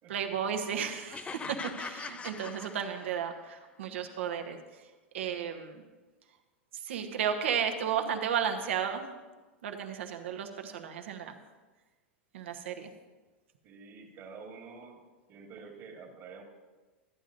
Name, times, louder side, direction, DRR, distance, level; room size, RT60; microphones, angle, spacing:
voice 1, 0.1-4.6 5.1-5.8 6.7-9.0 9.6-11.3 12.3-12.9, right 8 dB, 75° right, 5 dB, 1.0 m, -33 dB
sound 1, 1.1-3.4, left 5 dB, 20° left, 0.4 m, -42 dB
voice 2, 13.6-15.0 15.3-16.4, right 5 dB, 45° right, 0 dB, 1.7 m, -48 dB
13.5 x 9.2 x 2.6 m, 1.3 s
hypercardioid pair, 100°, 7 cm